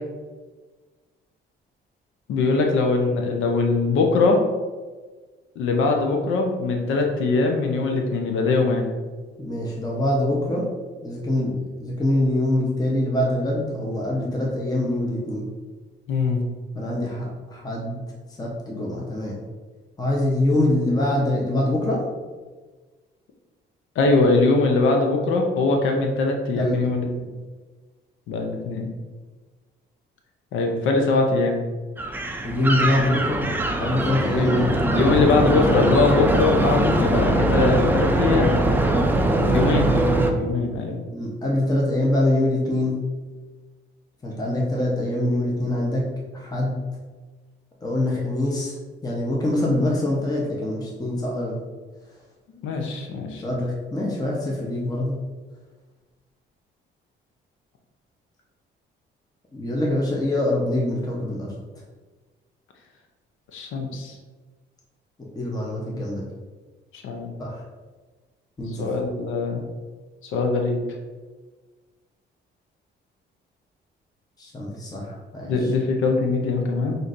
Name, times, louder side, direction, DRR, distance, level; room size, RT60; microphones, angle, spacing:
voice 1, 2.3-4.4 5.6-8.9 16.1-16.4 24.0-27.1 28.3-28.9 30.5-31.6 34.4-34.5 34.9-38.5 39.5-39.9 40.3-41.0 52.5-53.4 63.5-64.1 66.9-67.3 68.8-69.6 70.2-70.8 75.4-77.0, left 3 dB, 85° left, 2 dB, 0.6 m, -22 dB
voice 2, 9.4-10.7 11.0-15.5 16.7-18.0 18.4-19.4 20.0-22.0 26.5-26.8 32.4-33.5 33.8-35.5 38.0-38.3 41.1-43.0 44.2-46.1 46.3-46.8 47.8-48.8 49.0-51.6 53.4-55.2 59.5-61.6 65.2-66.3 67.4-67.6 68.6-68.9 74.4-75.7, left 1 dB, 20° left, -3 dB, 0.8 m, -24 dB
sound 1, 32.0-40.3, right 1 dB, 10° right, 0.4 m, -21 dB
5.8 x 2.6 x 2.5 m, 1.3 s
cardioid pair, 90°, 20 cm